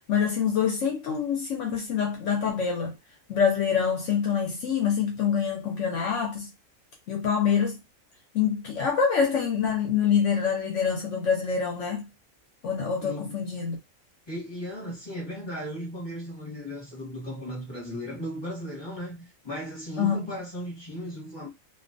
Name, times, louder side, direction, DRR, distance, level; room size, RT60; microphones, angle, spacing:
voice 1, 0.1-2.9 3.3-6.5 7.1-7.8 8.3-12.1 12.6-13.8 20.0-20.3, left 7 dB, 65° left, 0.9 m, -25 dB
voice 2, 13.0-13.4 14.3-21.5, equal, 20° left, 0.9 m, -36 dB
2.4 x 2.3 x 2.5 m
omnidirectional pair, 1.4 m